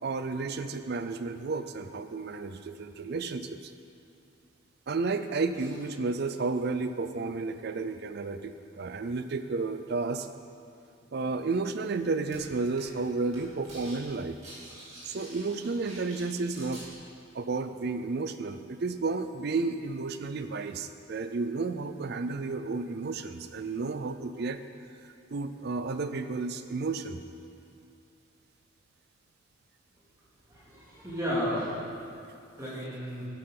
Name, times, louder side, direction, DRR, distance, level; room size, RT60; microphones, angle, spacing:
voice 1, 0.0-3.7 4.9-10.3 11.1-14.4 15.0-16.8 17.3-24.6 25.3-27.2, right 3 dB, 50° right, 10 dB, 0.5 m, -32 dB
sound 1, 12.3-12.4 12.8-13.0 13.3-14.0 14.2-16.8, right 1 dB, 35° right, 2.8 m, -47 dB
voice 2, 30.5-31.8 32.5-33.3, equal, 15° right, -9 dB, 2.4 m, -33 dB
12.0 x 8.5 x 3.9 m, 2.5 s
head